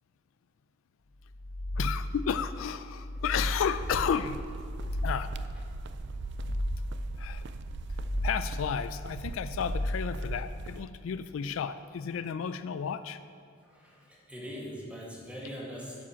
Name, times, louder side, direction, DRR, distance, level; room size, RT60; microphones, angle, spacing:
sound 1, 1.2-2.3 2.8-3.9 4.4-5.5 6.0-7.1 7.6-8.7 9.2-10.3, left 1 dB, 55° left, 0.8 m, -34 dB
voice 1, 1.8-4.4 5.0-5.3 7.2-7.5 8.2-13.2, left 7 dB, 80° left, 13 dB, 0.3 m, -32 dB
sound 2, 3.7-10.8, right 4 dB, 60° right, 0.3 m, -41 dB
voice 2, 13.7-16.0, equal, 5° right, -5 dB, 1.8 m, -42 dB
11.0 x 5.1 x 5.8 m, 2.3 s
head